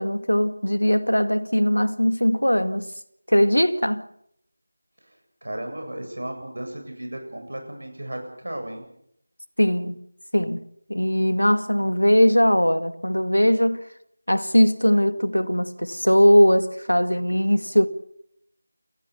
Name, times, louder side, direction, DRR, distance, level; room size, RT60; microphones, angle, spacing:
voice 1, 0.0-2.9 3.3-4.1 9.6-10.0 10.3-10.6 10.9-13.8 14.3-17.9, equal, 90° left, 2.0 m, -20 dB
voice 2, 5.4-8.9, right 1 dB, 65° right, 7.9 m, -34 dB
29.0 x 20.0 x 7.0 m
figure-of-eight pair, 165°, 0 cm